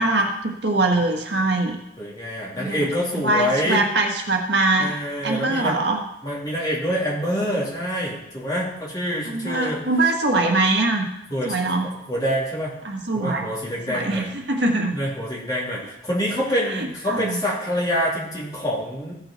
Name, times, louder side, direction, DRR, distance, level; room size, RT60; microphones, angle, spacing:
voice 1, 0.0-1.8 2.6-2.9 3.2-4.9 5.2-6.0 9.3-11.1 11.4-11.9 12.8-13.5 13.9-15.0 16.8-17.4, right 2 dB, 70° right, 2 dB, 1.5 m, -22 dB
voice 2, 2.0-3.8 4.8-5.8 6.2-9.9 11.3-12.7 13.1-14.3 14.9-19.1, equal, 20° left, -6 dB, 3.2 m, -26 dB
16.0 x 5.7 x 4.4 m, 0.84 s
head